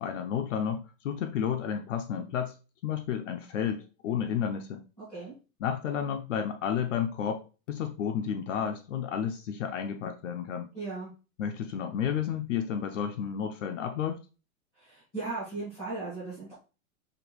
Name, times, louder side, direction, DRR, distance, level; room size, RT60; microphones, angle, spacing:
voice 1, 0.0-2.6 2.8-4.8 5.6-10.7 11.4-14.2, left 8 dB, 60° left, 0.5 m, -31 dB
voice 2, 10.7-11.1 14.8-16.5, right 3 dB, ahead, 0.3 m, -37 dB
5.1 x 2.4 x 3.0 m
supercardioid pair, 175°, 42 cm